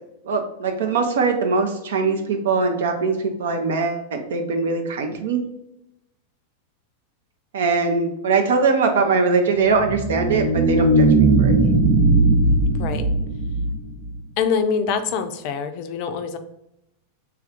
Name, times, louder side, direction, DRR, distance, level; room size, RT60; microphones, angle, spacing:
voice 1, 0.2-5.4 7.5-11.6, right 4 dB, 60° right, 4 dB, 0.5 m, -21 dB
sound 1, 9.6-14.2, right 2 dB, 5° right, 0.6 m, -18 dB
voice 2, 14.4-16.4, left 6 dB, 45° left, 9 dB, 0.4 m, -24 dB
3.4 x 2.4 x 4.2 m, 0.84 s
figure-of-eight pair, 90°, 0 cm